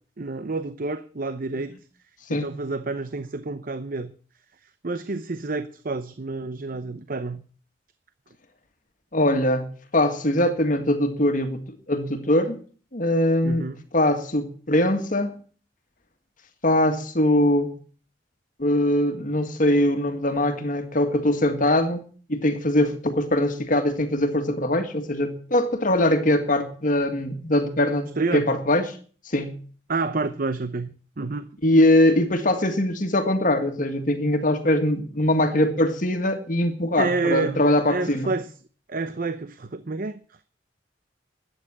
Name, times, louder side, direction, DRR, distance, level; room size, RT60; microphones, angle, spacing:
voice 1, 0.2-1.7 2.3-4.1 4.8-7.4 13.4-13.8 28.2-28.5 29.9-31.5 37.0-38.5 38.9-40.4, right 3 dB, 50° right, 0.8 m, -29 dB
voice 2, 9.1-12.6 12.9-13.7 13.9-15.4 16.6-17.7 18.6-22.0 22.3-28.8 29.3-29.6 31.6-38.3, left 1 dB, 45° left, 1.7 m, -22 dB
12.5 x 9.0 x 8.7 m
head